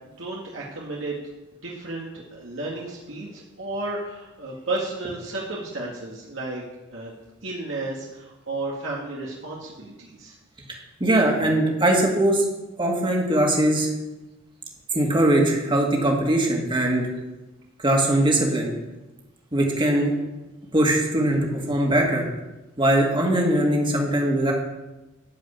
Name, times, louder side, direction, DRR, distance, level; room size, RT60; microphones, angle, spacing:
voice 1, 0.2-1.2 1.6-6.6 6.9-7.1 7.4-10.3, right 2 dB, 70° right, -4 dB, 2.0 m, -33 dB
voice 2, 11.0-12.4 12.8-13.9 14.9-17.1 17.8-18.7 19.5-20.1 20.7-21.4 21.7-22.2 22.8-24.5, right 1 dB, 25° right, 0 dB, 2.2 m, -21 dB
14.0 x 5.3 x 8.6 m, 1.0 s
head